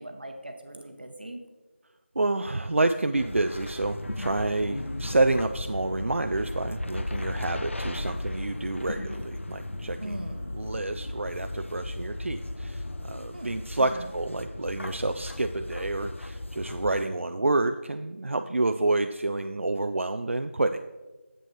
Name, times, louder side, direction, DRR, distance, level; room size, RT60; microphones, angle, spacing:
voice 1, 0.0-1.4 10.0-10.6 13.3-14.1, right 1 dB, 50° right, 5 dB, 0.9 m, -40 dB
voice 2, 2.2-10.2 10.5-20.8, right 2 dB, 75° right, 8 dB, 0.3 m, -28 dB
sound 1, 3.2-17.1, left 1 dB, 70° left, 0.5 m, -36 dB
7.6 x 7.5 x 3.1 m, 1.2 s
figure-of-eight pair, 175°, 7 cm